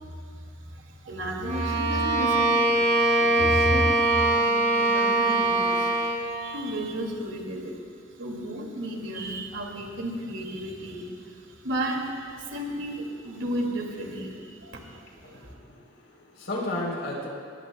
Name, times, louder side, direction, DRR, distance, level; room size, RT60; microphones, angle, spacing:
voice 1, 1.0-7.8 8.2-11.1 11.6-14.8 15.2-15.5, right 1 dB, 80° right, 0 dB, 2.4 m, -32 dB
Bowed string instrument, 1.4-6.3, right 2 dB, 35° right, 2.1 m, -22 dB
voice 2, 14.8-15.6 16.0-17.3, left 1 dB, 75° left, -3 dB, 3.7 m, -34 dB
21.0 x 19.0 x 2.3 m, 2.1 s
head